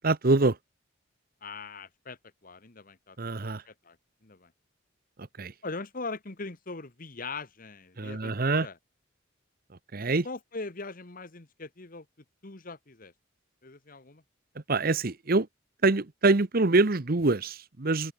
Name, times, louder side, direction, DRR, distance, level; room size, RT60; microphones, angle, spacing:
voice 1, 0.0-0.6 3.2-3.6 5.2-5.5 8.0-8.7 9.9-10.3 14.5-15.5 15.8-18.1, right 3 dB, 50° right, 1.0 m, -25 dB
voice 2, 1.4-4.0 4.2-4.5 5.6-8.7 10.2-12.0 12.4-13.1 13.6-14.2, left 3 dB, 45° left, 1.5 m, -41 dB
head